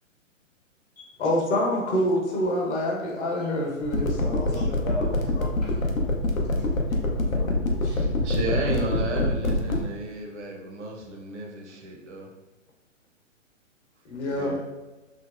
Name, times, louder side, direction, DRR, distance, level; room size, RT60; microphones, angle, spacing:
voice 1, 1.2-4.6 7.1-8.1 14.1-14.6, left 1 dB, 60° left, -2 dB, 1.0 m, -27 dB
sound 1, 3.8-9.8, left 2 dB, 85° left, 0.6 m, -24 dB
voice 2, 4.2-6.1 6.6-6.7, left 1 dB, 35° left, -6 dB, 0.4 m, -38 dB
voice 3, 7.8-12.3 14.2-14.6, right 2 dB, 60° right, 0 dB, 0.7 m, -33 dB
3.2 x 2.0 x 2.4 m, 1.1 s
figure-of-eight pair, 125°, 39 cm